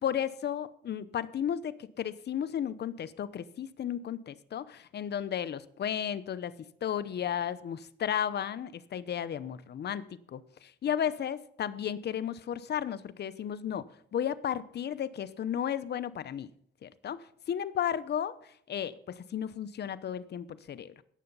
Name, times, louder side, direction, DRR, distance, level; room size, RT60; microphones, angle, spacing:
voice 1, 0.0-6.5 6.8-13.8 14.1-16.5 16.8-20.9, left 9 dB, 55° left, 15 dB, 0.8 m, -34 dB
17.5 x 6.9 x 5.4 m, 0.64 s
cardioid pair, 90°, 21 cm